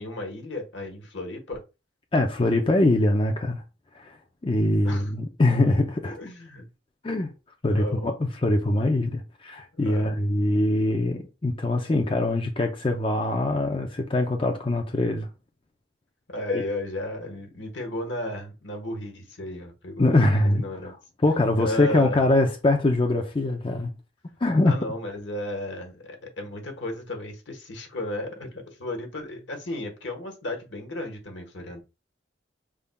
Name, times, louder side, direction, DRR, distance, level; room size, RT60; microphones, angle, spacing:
voice 1, 0.0-1.6 4.8-5.1 6.0-6.7 7.7-8.1 9.7-10.1 16.3-20.9 21.6-22.2 24.6-31.8, left 1 dB, 90° left, 1.3 m, -34 dB
voice 2, 2.1-3.6 3.9-4.2 4.4-6.2 7.0-7.3 7.6-15.3 20.0-20.6 21.2-23.9 24.4-24.7, left 2 dB, 30° left, 0.6 m, -23 dB
5.3 x 3.6 x 2.3 m
head